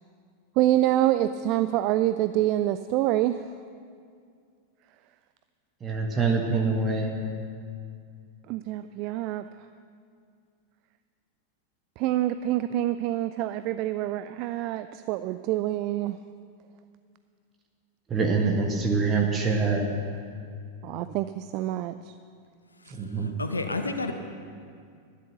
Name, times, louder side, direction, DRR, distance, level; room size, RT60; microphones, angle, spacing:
voice 1, 0.6-3.4 8.5-9.4 12.0-16.2 20.8-22.0 22.9-23.0, right 13 dB, 40° right, 12 dB, 0.3 m, -26 dB
voice 2, 5.8-7.1 18.1-19.9 22.9-23.3, right 4 dB, 20° right, 1 dB, 1.5 m, -25 dB
voice 3, 23.2-24.1, left 3 dB, 80° left, 6 dB, 0.8 m, -30 dB
12.5 x 10.5 x 6.7 m, 2.2 s
figure-of-eight pair, 90°, 0 cm